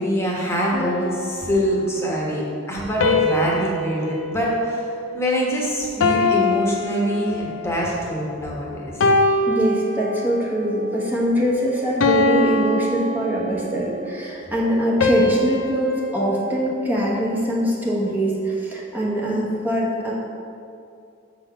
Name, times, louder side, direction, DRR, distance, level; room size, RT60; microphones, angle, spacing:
voice 1, 0.0-4.9 5.1-9.0, equal, 15° left, -4 dB, 1.2 m, -24 dB
sound 1, 0.7-2.0 3.0-5.5 6.0-7.7 8.3-8.5 9.0-10.5 11.0-11.3 12.0-13.9 15.0-17.4, left 2 dB, 85° left, 0.5 m, -24 dB
voice 2, 9.5-20.1, equal, 10° right, -6 dB, 1.1 m, -23 dB
6.8 x 4.1 x 5.5 m, 2.4 s
head